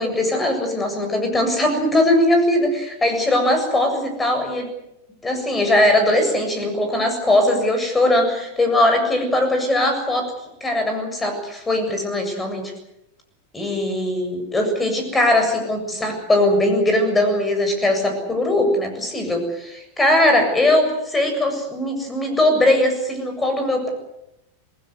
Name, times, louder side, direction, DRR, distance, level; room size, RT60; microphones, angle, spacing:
voice 1, 0.0-4.7 5.2-10.3 10.6-12.7 13.5-23.9, left 1 dB, 10° left, 5 dB, 7.5 m, -20 dB
27.0 x 19.5 x 8.0 m, 0.86 s
figure-of-eight pair, 90°, 0 cm